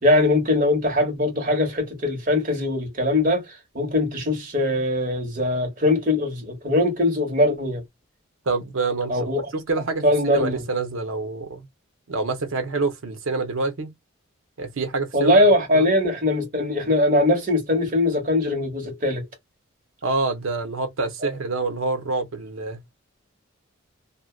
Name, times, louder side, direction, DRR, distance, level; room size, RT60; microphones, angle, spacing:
voice 1, 0.0-7.8 9.1-9.4 10.0-10.6 15.1-19.2 21.2-21.3, left 1 dB, 40° right, 1.0 m, -21 dB
voice 2, 8.5-9.2 9.5-11.7 12.1-13.9 14.6-15.4 15.7-15.9 20.0-22.8, right 3 dB, 80° right, 0.7 m, -26 dB
2.5 x 2.1 x 2.3 m
head